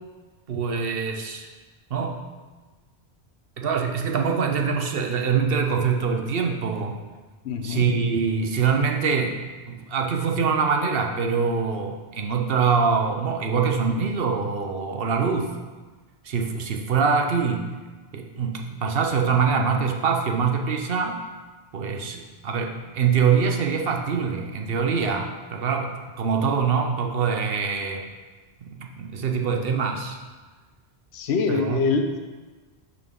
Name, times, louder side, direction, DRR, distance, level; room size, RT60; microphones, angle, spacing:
voice 1, 0.5-1.5 1.9-2.2 3.6-7.0 7.6-15.6 16.2-17.8 18.1-21.2 21.7-28.0 28.6-30.2 31.5-31.8, right 5 dB, 65° right, 3 dB, 0.9 m, -24 dB
voice 2, 7.4-7.9 31.1-32.2, left 4 dB, 75° left, 5 dB, 1.0 m, -24 dB
11.5 x 3.9 x 3.7 m, 1.3 s
omnidirectional pair, 1.1 m